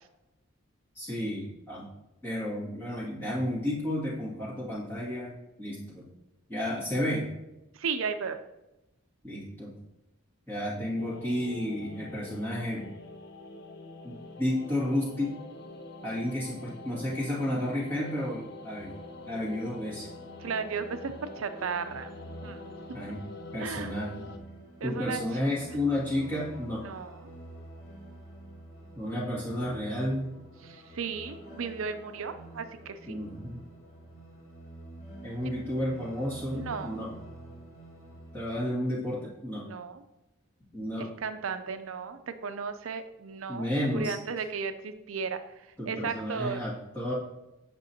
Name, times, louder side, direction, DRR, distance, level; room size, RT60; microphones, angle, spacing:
voice 1, 1.0-1.9 2.2-5.3 5.6-6.1 6.5-7.3 9.2-9.7 10.5-12.9 14.0-15.4 16.0-18.9 19.3-20.1 22.9-23.3 23.5-24.3 24.8-26.9 28.9-30.3 33.1-33.6 35.2-37.1 38.3-39.7 40.7-41.1 43.5-44.2 45.8-47.1, left 1 dB, 10° left, -7 dB, 2.2 m, -32 dB
voice 2, 7.7-8.4 20.4-22.1 22.4-22.7 23.6-23.9 24.8-25.2 26.8-27.3 30.6-33.2 35.4-35.5 36.5-37.0 39.6-40.0 41.0-45.4 45.9-46.6, right 5 dB, 85° right, 9 dB, 0.5 m, -35 dB
sound 1, 11.0-24.4, left 2 dB, 50° left, 0.5 m, -45 dB
sound 2, 18.8-38.5, right 1 dB, 75° left, 2.7 m, -48 dB
8.9 x 6.0 x 2.8 m, 0.93 s
head